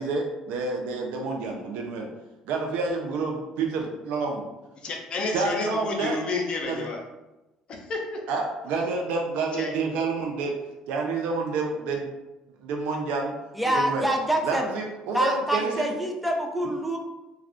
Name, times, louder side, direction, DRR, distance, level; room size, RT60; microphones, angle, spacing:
voice 1, 0.0-2.1 2.5-4.4 5.3-6.2 6.7-6.9 8.3-10.5 10.9-12.1 12.6-13.3 13.6-14.1 14.4-15.9, right 3 dB, 80° right, 1 dB, 0.4 m, -28 dB
voice 2, 4.8-7.0 7.7-8.2 9.6-9.7, left 3 dB, 45° left, 1 dB, 0.6 m, -30 dB
voice 3, 13.5-14.7 15.1-17.0, right 1 dB, 5° right, 2 dB, 0.5 m, -26 dB
2.4 x 2.3 x 3.4 m, 1.0 s
cardioid pair, 100°, 2 cm